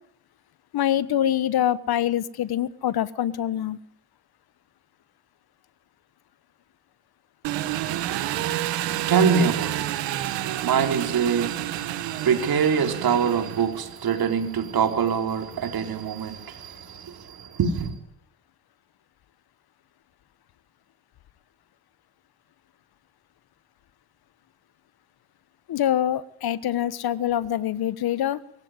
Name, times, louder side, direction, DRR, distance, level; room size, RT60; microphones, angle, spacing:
voice 1, 0.7-3.8 25.7-28.4, left 11 dB, 60° left, 1.3 m, -25 dB
Engine, 7.4-13.9, right 14 dB, 85° right, 1.9 m, -29 dB
voice 2, 7.7-17.9, right 6 dB, 55° right, 4.3 m, -25 dB
24.0 x 16.0 x 9.7 m
cardioid pair, 90°, 43 cm